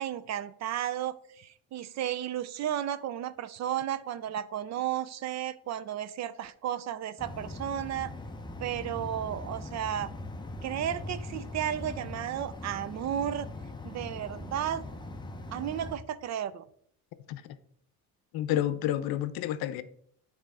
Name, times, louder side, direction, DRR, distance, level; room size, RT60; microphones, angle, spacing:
voice 1, 0.0-8.1 8.6-10.1 10.6-13.5 13.8-14.8 15.5-16.6, right 10 dB, 45° right, 0.5 m, -33 dB
sound 1, 7.2-16.0, left 2 dB, 10° left, 0.7 m, -41 dB
voice 2, 18.3-19.8, left 12 dB, 75° left, 0.7 m, -29 dB
9.1 x 3.5 x 4.8 m
cardioid pair, 130°, 37 cm